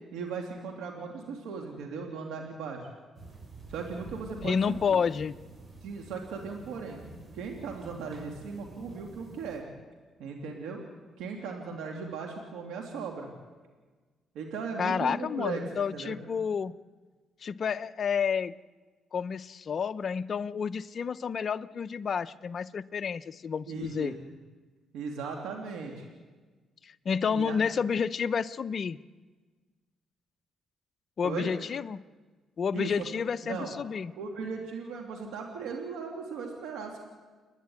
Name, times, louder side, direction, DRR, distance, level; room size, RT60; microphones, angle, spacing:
voice 1, 0.1-2.9 3.7-5.0 5.8-7.0 7.3-9.7 10.2-10.8 11.2-13.3 14.3-16.2 23.7-24.3 24.9-26.1 27.2-27.6 31.2-31.5 32.7-33.1 33.4-33.7 34.2-37.0, right 5 dB, 90° right, 1 dB, 2.8 m, -37 dB
sound 1, 3.1-9.6, right 2 dB, 40° right, 6.8 m, -48 dB
voice 2, 4.4-5.3 14.8-16.7 17.4-18.5 19.1-24.1 26.8-29.0 31.2-32.0 32.6-34.1, left 6 dB, 50° left, 13 dB, 0.7 m, -30 dB
29.5 x 10.5 x 9.5 m, 1.4 s
cardioid pair, 90°, 0 cm